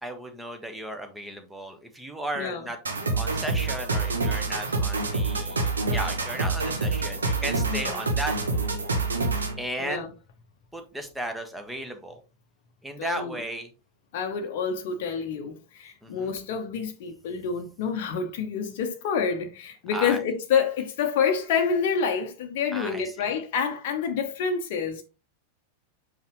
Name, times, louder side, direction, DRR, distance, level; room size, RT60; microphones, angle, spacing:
voice 1, 0.0-2.8 3.1-8.9 9.6-10.1 10.7-12.2 12.8-13.7 16.0-16.3 19.9-20.2 22.7-23.0, right 1 dB, 5° right, 1.3 m, -35 dB
voice 2, 2.4-2.7 7.6-8.0 9.8-10.1 13.0-13.4 14.1-25.0, left 6 dB, 50° left, 0.8 m, -28 dB
sound 1, 2.9-9.6, right 3 dB, 70° right, 1.1 m, -27 dB
5.8 x 5.5 x 3.1 m
figure-of-eight pair, 90°, 0 cm